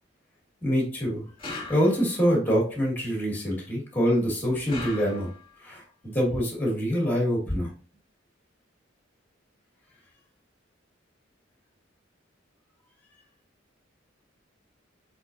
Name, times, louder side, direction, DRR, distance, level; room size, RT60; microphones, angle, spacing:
voice 1, 0.6-1.3 1.7-5.3 5.6-7.7, equal, 10° left, -2 dB, 1.7 m, -25 dB
sound 1, 1.4-2.3 4.7-5.6, left 3 dB, 30° left, 1.7 m, -39 dB
4.3 x 4.2 x 2.5 m, 0.40 s
head